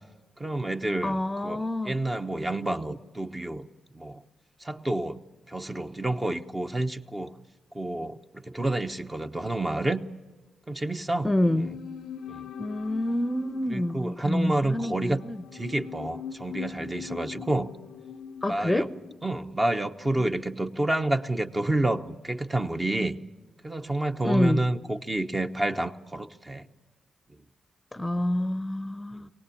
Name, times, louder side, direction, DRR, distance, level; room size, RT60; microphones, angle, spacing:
voice 1, 0.4-3.7 3.9-4.2 4.6-5.2 5.5-7.4 7.7-10.0 10.7-11.8 12.3-12.5 13.7-15.2 15.5-17.7 18.5-18.9 19.2-23.2 23.6-26.7 29.1-29.2, right 2 dB, 20° right, 7 dB, 1.0 m, -29 dB
voice 2, 1.0-1.9 11.2-11.7 12.6-15.4 18.4-18.9 24.2-24.6 27.9-29.3, left 1 dB, 15° left, 11 dB, 0.8 m, -27 dB
sound 1, 11.2-20.5 20.8-20.9, left 8 dB, 85° left, 0.7 m, -43 dB
23.5 x 18.5 x 8.5 m, 1.2 s
cardioid pair, 75°, 0 cm